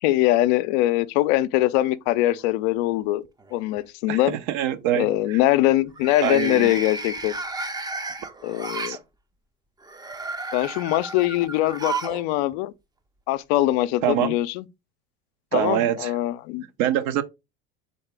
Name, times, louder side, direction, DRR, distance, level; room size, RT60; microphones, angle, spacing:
voice 1, 0.0-3.2 3.5-4.4 5.0-7.3 8.4-9.0 10.5-12.7 13.3-14.6 15.5-16.6, left 16 dB, 70° left, 0.5 m, -22 dB
sound 1, 2.4-3.0 3.4-3.8 5.9-9.0 9.8-12.2 12.5-12.6 13.7-13.8, right 3 dB, 10° right, 0.5 m, -33 dB
voice 2, 4.1-5.4 6.2-6.7 8.9-9.0 14.0-14.4 15.5-16.1 16.8-17.2, right 11 dB, 60° right, 0.7 m, -24 dB
4.1 x 3.5 x 3.3 m
hypercardioid pair, 75°, 33 cm